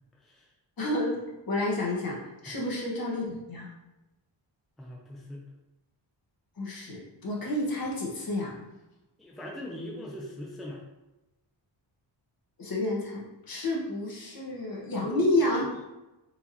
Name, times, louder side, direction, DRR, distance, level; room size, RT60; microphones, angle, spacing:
voice 1, 0.2-0.5 2.5-2.6 4.8-5.5 9.2-10.8 15.0-15.7, left 1 dB, ahead, -2 dB, 0.5 m, -41 dB
voice 2, 0.8-2.2 2.4-3.7 6.6-8.5 12.6-15.6, left 1 dB, 50° left, -3 dB, 1.3 m, -30 dB
4.6 x 2.9 x 4.0 m, 1.0 s
wide cardioid pair, 165°, 45 cm